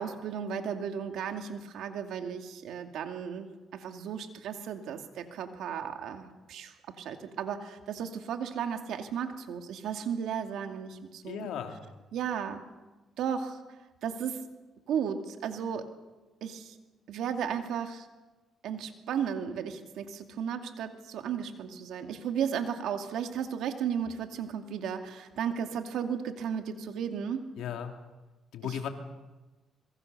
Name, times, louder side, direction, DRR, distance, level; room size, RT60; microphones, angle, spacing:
voice 1, 0.0-11.5 12.1-12.6 13.2-13.6 14.0-14.5 14.9-15.9 16.4-16.7 17.1-18.1 18.6-27.5 28.6-28.9, right 7 dB, 80° right, 6 dB, 2.4 m, -34 dB
voice 2, 11.2-11.8 27.6-27.9 28.5-28.9, left 9 dB, 80° left, 5 dB, 2.7 m, -35 dB
25.5 x 22.5 x 6.8 m, 1.2 s
cardioid pair, 90°, 0 cm